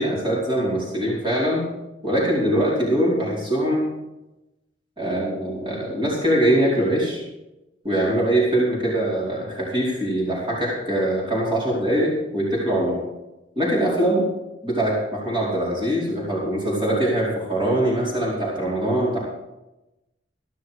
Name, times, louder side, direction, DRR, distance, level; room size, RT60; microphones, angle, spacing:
voice 1, 0.0-1.6 2.0-3.8 5.0-7.2 7.8-13.0 13.6-14.3 14.6-19.2, right 1 dB, 25° right, -6 dB, 4.7 m, -22 dB
14.5 x 11.5 x 5.1 m, 0.97 s
head